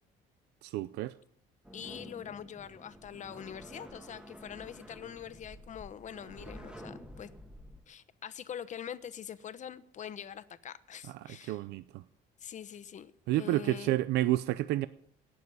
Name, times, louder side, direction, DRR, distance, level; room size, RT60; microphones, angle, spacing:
voice 1, 0.6-1.1 11.1-12.0 13.3-14.9, right 15 dB, 85° right, 0.6 m, -30 dB
sound 1, 1.6-7.8, equal, 5° right, 1.9 m, -50 dB
voice 2, 1.7-7.3 7.9-11.6 12.4-13.9, left 9 dB, 45° left, 1.1 m, -44 dB
18.0 x 7.3 x 10.0 m
cardioid pair, 110°, 17 cm